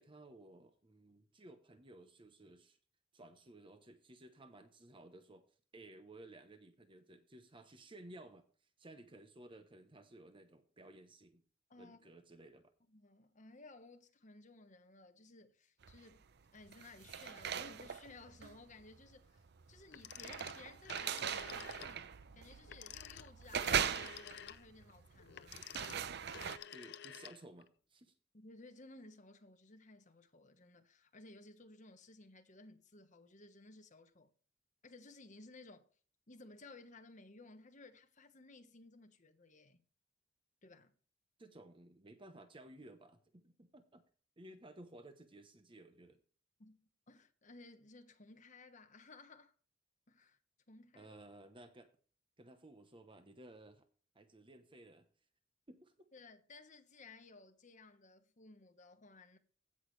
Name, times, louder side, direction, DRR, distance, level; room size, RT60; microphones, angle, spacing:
voice 1, 0.0-2.8 3.1-5.5 5.7-8.5 8.8-11.4 11.8-12.7 26.7-28.1 41.4-44.0 44.4-46.2 50.9-51.9 52.4-53.8 54.1-55.1 55.7-55.9, right 1 dB, 25° right, 1.0 m, -57 dB
voice 2, 11.7-12.1 12.9-16.2 16.5-19.4 19.7-22.1 22.3-25.7 28.3-34.3 34.8-35.9 36.3-39.8 40.6-40.9 46.6-49.5 50.1-50.4 50.7-51.1 56.1-59.4, left 3 dB, 40° left, 1.3 m, -58 dB
sound 1, 15.8-16.2 16.6-26.6, right 8 dB, 60° right, 0.6 m, -41 dB
Telephone, 19.9-22.0 22.6-27.7, left 9 dB, 60° left, 0.6 m, -51 dB
16.0 x 6.2 x 3.3 m
head